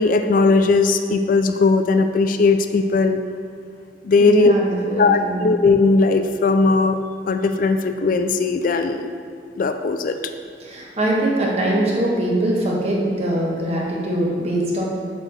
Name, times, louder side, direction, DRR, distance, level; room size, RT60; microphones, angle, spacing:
voice 1, 0.0-3.2 4.0-4.5 5.0-7.0 7.3-9.2 9.6-10.2, left 3 dB, 45° left, 8 dB, 0.3 m, -18 dB
voice 2, 4.2-5.4 10.6-14.8, right 1 dB, 35° right, -4 dB, 1.5 m, -22 dB
8.8 x 4.6 x 6.4 m, 2.3 s
head